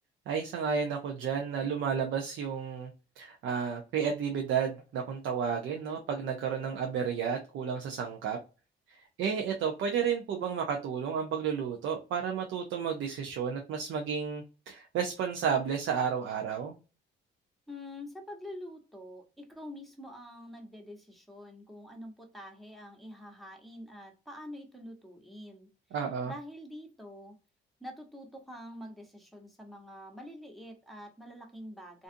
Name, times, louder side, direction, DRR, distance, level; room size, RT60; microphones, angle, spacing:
voice 1, 0.3-2.9 3.2-8.4 8.9-16.8 25.9-26.3, right 7 dB, 75° right, 0.5 m, -32 dB
voice 2, 17.7-25.7 26.2-27.4 27.8-32.0, left 1 dB, ahead, 0.8 m, -46 dB
2.5 x 2.4 x 2.5 m
cardioid pair, 90°, 20 cm